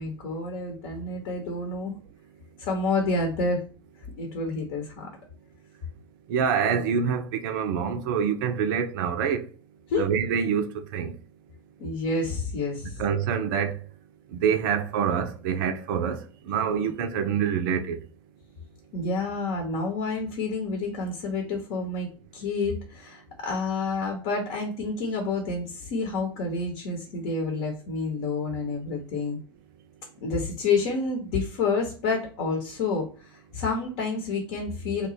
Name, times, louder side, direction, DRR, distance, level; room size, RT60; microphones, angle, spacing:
voice 1, 0.0-1.9 2.6-3.6 4.2-5.1 6.7-6.8 9.9-10.1 11.8-13.0 18.9-29.4 30.2-35.1, left 3 dB, 50° left, 0.8 m, -29 dB
voice 2, 6.3-9.4 10.0-11.1 13.0-13.7 14.3-16.2 16.5-18.0, right 7 dB, 55° right, 0.5 m, -26 dB
2.9 x 2.2 x 4.0 m
figure-of-eight pair, 80°, 13 cm